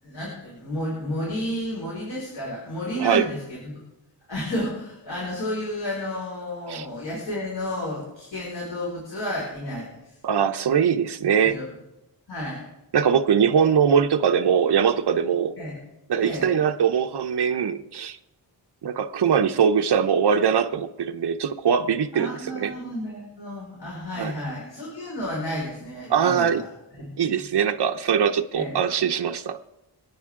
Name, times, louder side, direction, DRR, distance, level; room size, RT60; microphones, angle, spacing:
voice 1, 0.0-3.7 4.3-10.2 11.3-11.7 12.3-12.6 15.6-15.8 16.2-16.5 22.1-27.5 28.5-28.7, left 1 dB, 85° left, -4 dB, 5.2 m, -32 dB
voice 2, 10.2-11.6 12.9-15.5 16.1-18.2 18.8-22.3 22.6-22.7 24.2-24.3 26.1-26.6 27.2-29.6, right 7 dB, 65° right, 5 dB, 0.8 m, -22 dB
27.0 x 9.6 x 3.7 m, 0.92 s
wide cardioid pair, 125°, 42 cm